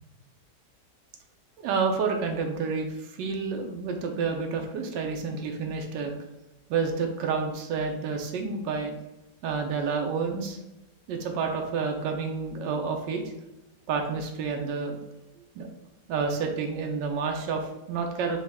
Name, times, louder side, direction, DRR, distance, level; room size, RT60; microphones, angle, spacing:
voice 1, 1.6-6.1 6.7-8.9 9.4-10.6 11.1-13.2 13.9-15.0 15.6-15.7 16.1-18.4, right 5 dB, 85° right, 3 dB, 1.3 m, -29 dB
5.1 x 2.2 x 3.4 m, 0.97 s
omnidirectional pair, 1.9 m